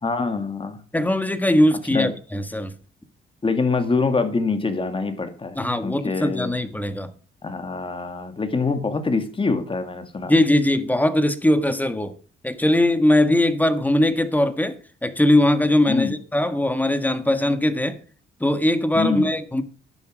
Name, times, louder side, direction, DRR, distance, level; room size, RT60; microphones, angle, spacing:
voice 1, 0.0-0.8 1.9-2.1 3.4-6.5 7.4-10.3 15.9-16.1 18.9-19.3, left 4 dB, 25° left, 2.3 m, -25 dB
voice 2, 0.9-2.7 5.5-7.1 10.3-12.1 12.4-18.0 18.4-19.6, left 1 dB, 10° left, 1.6 m, -20 dB
12.0 x 9.6 x 5.2 m
cardioid pair, 90°, 20 cm